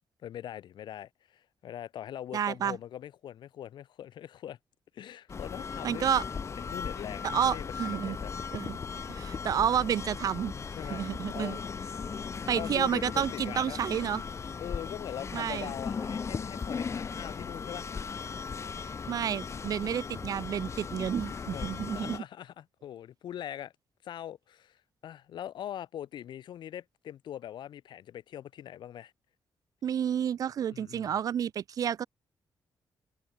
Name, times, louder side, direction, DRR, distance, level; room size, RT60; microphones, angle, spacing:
voice 1, 0.2-4.6 4.9-6.1 6.6-8.3 10.7-11.6 12.5-13.8 14.6-17.9 21.5-23.7 24.0-24.8 25.0-29.1 30.7-31.1, left 11 dB, 85° left, 4.5 m, -42 dB
voice 2, 2.3-2.8 5.8-6.2 7.2-8.2 8.5-8.8 9.1-10.5 10.9-11.6 12.5-14.2 15.3-15.7 19.1-22.2 29.8-32.1, right 9 dB, 50° right, 0.3 m, -30 dB
sound 1, 5.3-22.2, left 5 dB, 40° left, 3.4 m, -37 dB
wide cardioid pair, 140°, 8 cm